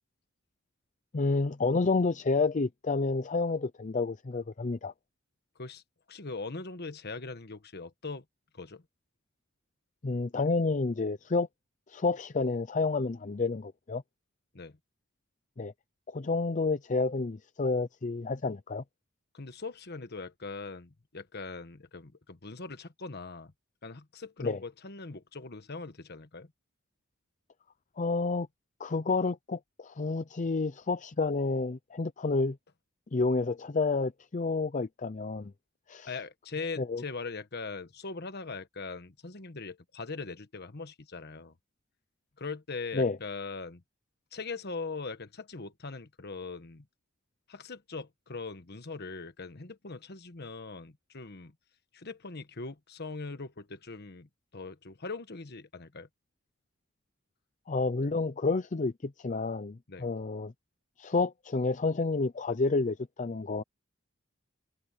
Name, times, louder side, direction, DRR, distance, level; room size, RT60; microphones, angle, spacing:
voice 1, 1.1-4.9 10.0-11.5 11.9-14.0 15.6-15.7 16.1-18.8 24.4-24.6 28.0-28.5 28.8-32.6 33.1-35.5 35.9-36.1 36.8-37.0 42.9-43.2 57.7-60.5 61.0-63.6, left 3 dB, 40° left, 0.6 m, -29 dB
voice 2, 6.1-8.2 8.5-8.8 14.5-14.8 19.3-23.5 23.8-26.5 36.1-41.5 42.4-43.8 44.3-46.9 47.5-51.5 51.9-56.1 59.9-60.1, left 4 dB, 55° left, 1.3 m, -41 dB
head